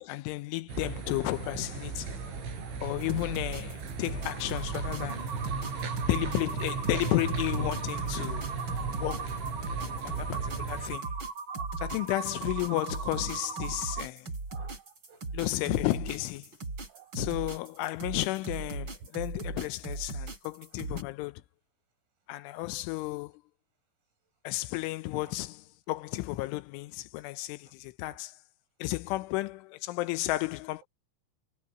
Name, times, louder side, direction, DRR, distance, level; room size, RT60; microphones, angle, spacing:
voice 1, 0.0-2.1 2.8-5.3 6.1-8.5 9.0-9.3 10.0-11.1 11.8-14.3 15.3-16.5 17.1-21.4 22.3-23.3 24.4-28.3 28.8-30.8, left 19 dB, 80° left, 3.0 m, -33 dB
sound 1, 0.7-11.0, right 5 dB, 65° right, 9.8 m, -36 dB
voice 2, 2.2-2.8 4.7-4.8 8.8-8.9 10.0-10.1 11.5-11.7 13.6-14.1 14.5-15.4 16.9-17.1 25.2-25.3 28.1-28.2, right 9 dB, 80° right, 10.5 m, -53 dB
sound 2, 3.0-21.0, right 3 dB, 25° right, 5.4 m, -38 dB
sound 3, 4.1-14.0, right 5 dB, 50° right, 2.6 m, -39 dB
omnidirectional pair, 5.8 m